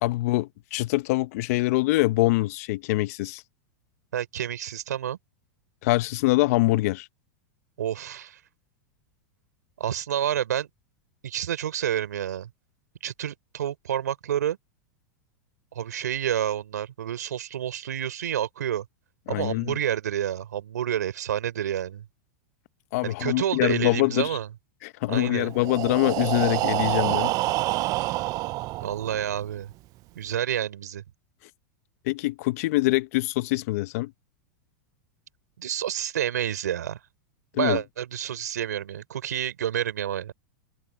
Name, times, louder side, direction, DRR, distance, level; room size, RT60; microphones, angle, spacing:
voice 1, 0.0-3.4 5.8-7.1 19.3-19.8 22.9-24.3 24.8-27.3 32.1-34.1 37.5-37.8, left 20 dB, 65° left, 0.9 m, -24 dB
voice 2, 4.1-5.2 7.8-8.4 9.8-10.7 11.2-12.5 13.0-14.6 15.7-18.9 19.3-22.0 23.0-24.5 25.1-25.5 28.8-29.7 30.2-31.0 35.6-37.0 37.5-40.3, right 10 dB, 90° right, 3.5 m, -29 dB
Breathing, 25.5-29.4, right 19 dB, 40° right, 0.5 m, -27 dB
hypercardioid pair, 120°, 9 cm